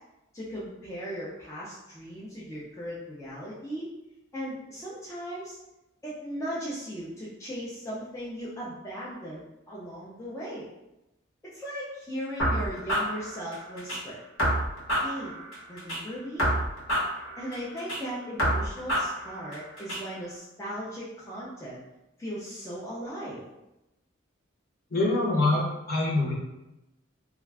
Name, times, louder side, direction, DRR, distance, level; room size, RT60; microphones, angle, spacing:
voice 1, 0.3-3.9 4.3-5.6 6.0-10.7 11.5-14.2 14.9-15.4 15.7-16.5 17.4-21.8 22.2-23.4, equal, 15° left, -8 dB, 0.4 m, -37 dB
sound 1, 12.4-14.0 14.4-16.0 16.4-18.0 18.4-20.0, equal, 75° left, 1.0 m, -28 dB
voice 2, 24.9-26.3, left 2 dB, 45° left, -5 dB, 0.9 m, -25 dB
2.3 x 2.2 x 3.3 m, 0.94 s
head